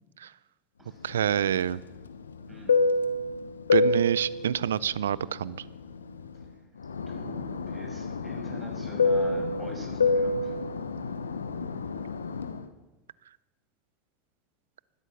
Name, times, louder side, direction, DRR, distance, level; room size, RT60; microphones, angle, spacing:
voice 1, 1.0-1.8 3.7-5.6, right 9 dB, 80° right, 21 dB, 0.4 m, -27 dB
Fixed-wing aircraft airplane, 1.1-6.5 6.8-12.6, left 3 dB, 90° left, 0.9 m, -28 dB
voice 2, 2.5-2.8 7.1-10.5, right 2 dB, 15° right, 1 dB, 5.8 m, -45 dB
17.0 x 12.5 x 5.9 m, 1.1 s
hypercardioid pair, 85°, 0 cm